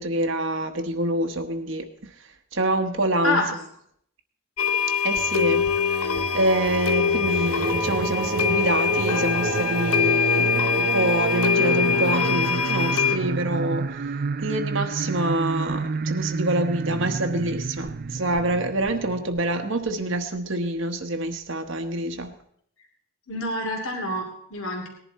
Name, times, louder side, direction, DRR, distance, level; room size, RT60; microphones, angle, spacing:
voice 1, 0.0-2.1 2.5-3.6 5.0-6.1 6.3-14.0 14.4-22.3, right 1 dB, 60° right, 5 dB, 1.1 m, -26 dB
voice 2, 3.2-3.5 23.3-24.9, left 1 dB, 70° left, 1 dB, 2.9 m, -27 dB
sound 1, 4.6-13.2, left 7 dB, 90° left, 0.9 m, -24 dB
Singing, 5.2-19.9, right 4 dB, 40° right, 0.4 m, -29 dB
18.5 x 11.0 x 4.1 m, 0.67 s
head